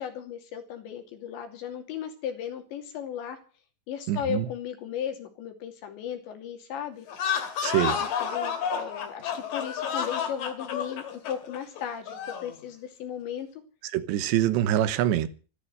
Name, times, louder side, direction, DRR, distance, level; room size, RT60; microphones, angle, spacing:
voice 1, 0.0-3.4 3.9-7.1 8.0-13.5, left 9 dB, 90° left, 5.0 m, -36 dB
voice 2, 4.1-4.5 7.6-8.0 13.9-15.3, right 12 dB, 85° right, 3.3 m, -24 dB
sound 1, 7.1-12.5, left 7 dB, 55° left, 3.6 m, -30 dB
14.5 x 12.5 x 7.8 m
omnidirectional pair, 5.0 m